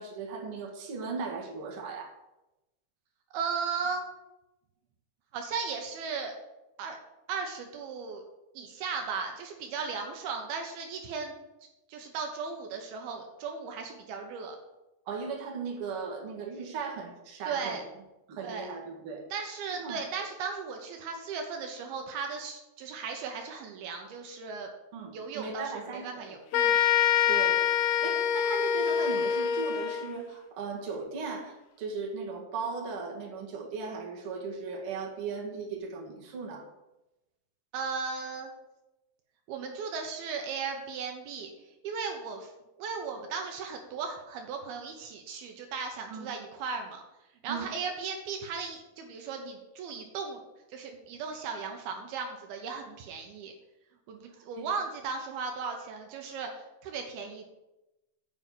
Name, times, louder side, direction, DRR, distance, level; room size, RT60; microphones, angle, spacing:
voice 1, 0.0-2.1 15.1-17.8 18.3-19.3 19.7-20.0 24.9-26.4 27.3-36.7 46.1-46.3 47.5-47.7 54.6-54.7, right 4 dB, 45° right, -2 dB, 2.1 m, -37 dB
voice 2, 3.3-4.0 5.3-6.3 6.8-7.0 7.3-8.2 8.6-11.3 11.9-14.6 17.5-17.8 18.4-18.7 19.3-24.7 25.1-26.8 37.7-38.5 39.5-42.5 42.8-47.0 47.4-50.4 50.7-53.5 54.1-57.5, right 5 dB, 75° right, 3 dB, 2.8 m, -36 dB
sound 1, 26.5-30.2, left 9 dB, 80° left, 2.6 m, -25 dB
9.0 x 5.3 x 7.6 m, 0.96 s
omnidirectional pair, 4.7 m